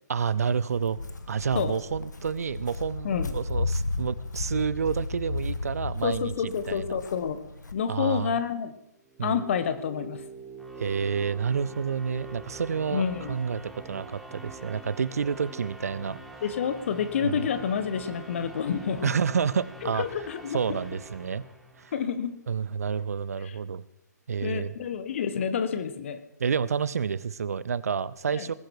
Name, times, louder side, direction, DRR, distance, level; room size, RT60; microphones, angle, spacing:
voice 1, 0.1-1.0 1.3-7.0 7.9-8.3 9.2-9.4 10.8-13.0 13.3-16.4 17.2-17.5 19.0-20.0 20.5-21.4 21.8-21.9 22.5-23.8 24.3-24.7 26.4-28.5, right 6 dB, 55° right, 19 dB, 0.7 m, -29 dB
Walk footsteps, 0.7-7.7, left 2 dB, 75° left, 1.5 m, -34 dB
voice 2, 6.0-7.4 7.7-8.7 9.2-10.2 12.9-13.4 16.4-19.1 19.8-20.8 21.9-22.3 23.4-23.5 24.4-26.2 28.3-28.5, left 7 dB, 45° left, 11 dB, 1.3 m, -29 dB
sound 1, 9.0-22.1, right 2 dB, ahead, 1.6 m, -44 dB
19.5 x 10.5 x 4.8 m, 0.82 s
figure-of-eight pair, 130°, 10 cm